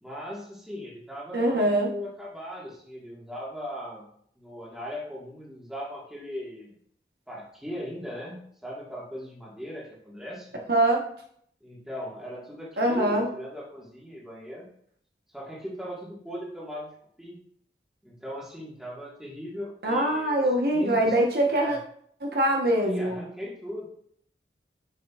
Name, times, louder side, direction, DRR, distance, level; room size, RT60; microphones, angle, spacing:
voice 1, 0.0-4.1 4.4-6.7 7.3-10.6 11.6-14.7 15.3-16.9 17.2-17.4 18.0-21.2 21.5-21.8 22.8-23.9, equal, 5° right, -5 dB, 1.5 m, -38 dB
voice 2, 1.3-1.9 10.7-11.0 12.8-13.3 19.8-21.8 22.2-23.2, right 1 dB, 60° right, 0 dB, 1.0 m, -23 dB
6.9 x 6.3 x 2.4 m, 0.64 s
head